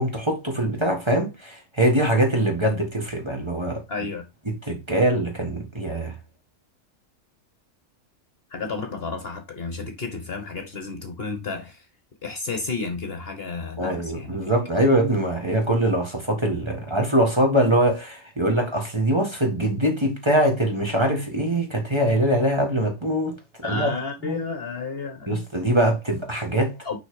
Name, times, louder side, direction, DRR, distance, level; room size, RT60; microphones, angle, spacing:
voice 1, 0.0-3.8 4.4-6.1 13.8-23.4 23.6-23.9 24.2-24.4 25.3-27.0, right 1 dB, 20° right, 1.8 m, -23 dB
voice 2, 3.9-4.2 8.5-11.9 12.2-14.5 23.6-25.4 26.8-27.0, left 4 dB, 45° left, 1.3 m, -32 dB
6.1 x 5.0 x 4.8 m
omnidirectional pair, 1.5 m